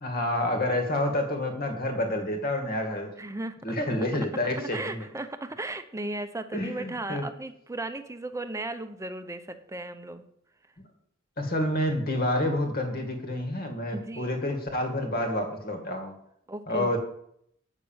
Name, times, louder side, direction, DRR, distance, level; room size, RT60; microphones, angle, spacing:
voice 1, 0.0-3.1 3.6-5.1 6.5-7.3 11.4-16.1 16.7-17.0, left 1 dB, 50° left, 4 dB, 2.1 m, -28 dB
voice 2, 3.2-3.8 4.1-4.2 4.6-10.2 13.9-14.4 16.5-17.0, right 2 dB, 15° right, 9 dB, 0.7 m, -36 dB
9.0 x 6.6 x 7.2 m, 0.71 s
head